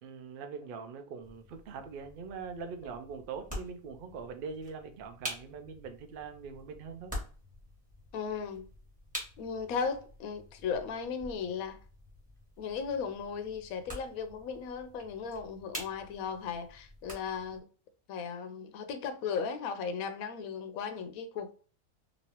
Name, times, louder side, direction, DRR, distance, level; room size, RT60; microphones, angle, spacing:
voice 1, 0.0-7.1, right 5 dB, 80° right, 0.4 m, -42 dB
sound 1, 1.2-17.6, equal, 5° right, 1.1 m, -47 dB
voice 2, 8.1-8.7 9.4-11.8 12.6-17.7 18.1-21.5, left 6 dB, 75° left, 1.0 m, -36 dB
3.0 x 2.7 x 2.8 m
omnidirectional pair, 1.5 m